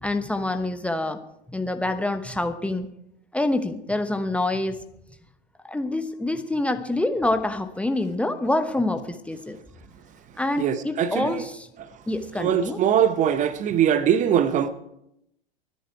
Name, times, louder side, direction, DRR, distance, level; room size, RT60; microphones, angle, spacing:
voice 1, 0.0-1.2 1.5-2.9 3.3-4.8 5.7-9.6 10.4-11.7 12.1-12.8, left 2 dB, 5° left, 0.9 m, -26 dB
voice 2, 10.6-11.4 11.8-11.9 12.4-14.7, right 9 dB, 25° right, 1.0 m, -22 dB
24.0 x 10.0 x 4.7 m
figure-of-eight pair, 95°, 30 cm